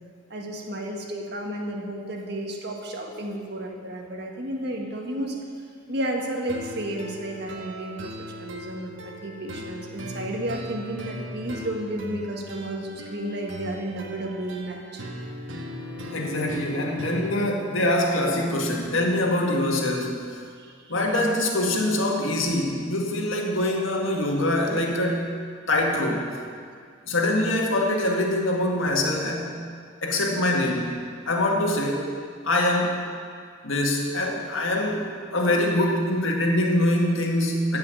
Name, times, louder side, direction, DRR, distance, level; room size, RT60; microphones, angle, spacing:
voice 1, 0.3-5.4 5.9-15.0 20.6-20.7, right 1 dB, 55° right, 1 dB, 1.7 m, -32 dB
Silent march guitar acoustic, 6.5-17.5, equal, 70° right, 1.5 m, -38 dB
voice 2, 16.1-20.3 20.9-25.3 25.7-26.3 27.1-29.6 30.0-31.0 31.3-32.1 32.4-33.0 33.6-37.8, left 1 dB, 75° left, 0 dB, 2.0 m, -24 dB
14.5 x 5.7 x 8.9 m, 2.1 s
head